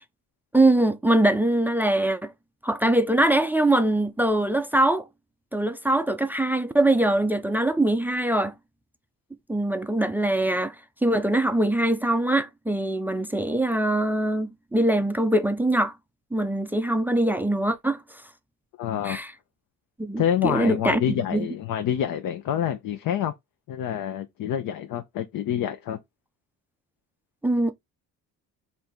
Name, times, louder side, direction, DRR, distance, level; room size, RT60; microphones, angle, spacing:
voice 1, 0.5-2.3 2.6-5.1 5.5-8.5 9.5-10.8 11.0-15.9 16.3-18.2 19.0-19.3 20.0-21.0 21.3-21.5 27.4-27.7, right 1 dB, 5° right, 0.3 m, -23 dB
voice 2, 18.8-19.2 20.2-23.3 23.7-26.0, left 9 dB, 60° left, 0.7 m, -27 dB
3.6 x 2.7 x 4.3 m
cardioid pair, 110°, 37 cm